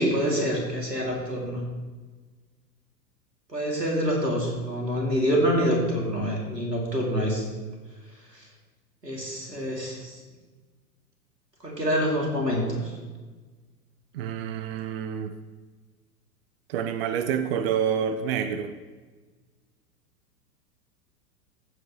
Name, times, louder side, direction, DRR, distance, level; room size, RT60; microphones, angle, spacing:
voice 1, 0.0-1.6 3.5-7.5 9.0-10.2 11.6-12.8, equal, 90° right, -2 dB, 2.8 m, -26 dB
voice 2, 14.1-15.3 16.7-18.7, right 8 dB, 40° right, 9 dB, 0.6 m, -28 dB
15.5 x 8.0 x 3.2 m, 1.4 s
figure-of-eight pair, 95°, 48 cm